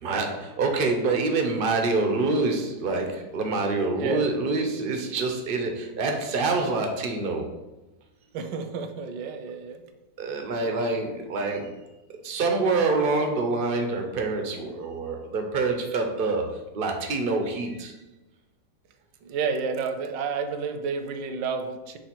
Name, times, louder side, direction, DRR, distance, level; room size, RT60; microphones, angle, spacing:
voice 1, 0.0-7.5 10.2-11.9 12.2-18.0, right 3 dB, 55° right, 4 dB, 0.5 m, -26 dB
voice 2, 3.9-4.3 8.3-9.8 19.2-22.0, right 5 dB, 75° right, 7 dB, 1.3 m, -30 dB
5.7 x 3.5 x 5.8 m, 1.0 s
omnidirectional pair, 2.0 m